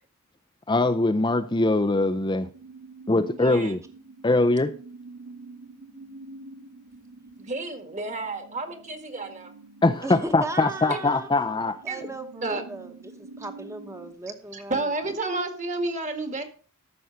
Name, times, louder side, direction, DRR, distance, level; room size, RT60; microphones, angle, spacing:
voice 1, 0.7-2.5 3.1-3.8 4.2-4.7 9.8-11.8, left 2 dB, 20° left, 7 dB, 0.5 m, -22 dB
sound 1, 2.2-14.1, right 3 dB, 85° right, 2.3 m, -47 dB
voice 2, 3.4-3.8 7.4-9.5 10.9-11.0 11.9-12.1 12.4-12.6 14.5-16.4, right 2 dB, 35° right, 8 dB, 1.8 m, -31 dB
voice 3, 10.0-11.3 11.8-14.9, right 2 dB, 15° right, 7 dB, 1.1 m, -37 dB
14.0 x 6.2 x 5.7 m, 0.39 s
head